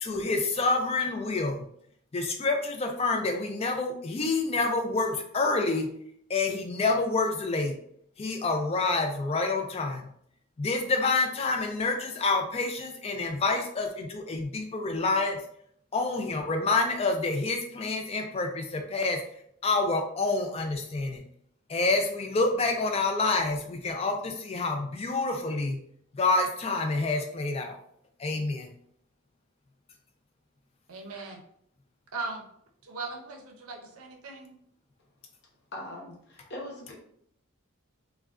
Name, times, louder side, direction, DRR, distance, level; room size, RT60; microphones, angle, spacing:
voice 1, 0.0-1.6 2.1-5.9 6.3-7.8 8.2-10.1 10.6-15.4 15.9-19.2 19.6-21.2 21.7-25.8 26.1-27.8 28.2-28.7, left 3 dB, 25° left, 4 dB, 0.3 m, -28 dB
voice 2, 30.9-31.4 32.1-32.4 32.8-34.5, right 3 dB, 75° right, 2 dB, 0.6 m, -38 dB
voice 3, 35.7-36.9, left 1 dB, 50° left, -2 dB, 0.8 m, -40 dB
2.4 x 2.2 x 3.4 m, 0.68 s
head